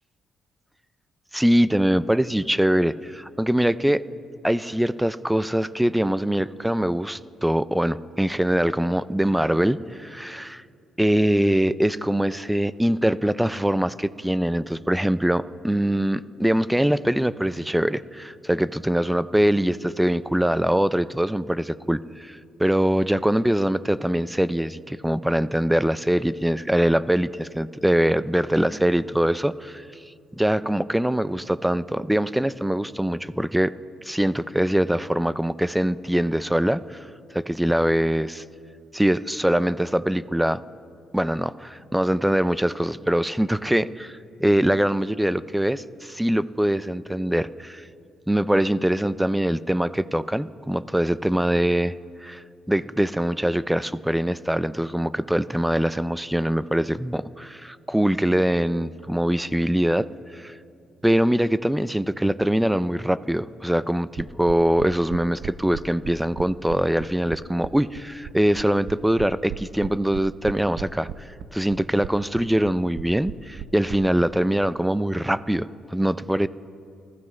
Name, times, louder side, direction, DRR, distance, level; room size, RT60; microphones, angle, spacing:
voice 1, 1.3-4.0 4.4-10.6 11.0-29.8 30.4-33.7 34.0-37.1 37.3-38.4 38.9-40.6 41.1-47.8 48.3-51.9 52.2-60.1 60.3-60.5 61.0-76.5, right 1 dB, 5° right, 15 dB, 0.4 m, -23 dB
sound 1, 64.2-74.0, right 10 dB, 75° right, 0.6 m, -36 dB
29.0 x 14.0 x 3.2 m, 2.5 s
cardioid pair, 90°, 0 cm